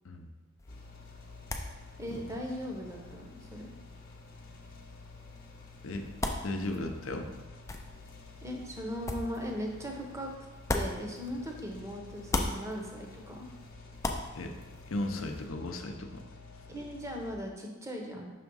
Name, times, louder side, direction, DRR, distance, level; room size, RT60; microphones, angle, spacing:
sound 1, 0.6-11.8 12.1-15.5, left 2 dB, 15° left, 0.4 m, -40 dB
sound 2, 0.7-17.3, left 3 dB, 45° left, 0.9 m, -50 dB
voice 1, 2.0-3.7 8.4-10.3 10.7-13.5 16.7-18.3, equal, 15° right, 1 dB, 0.8 m, -38 dB
voice 2, 6.4-7.4 14.3-14.5 14.9-16.2, left 2 dB, 70° left, 5 dB, 0.6 m, -36 dB
5.8 x 3.5 x 5.4 m, 1.2 s
head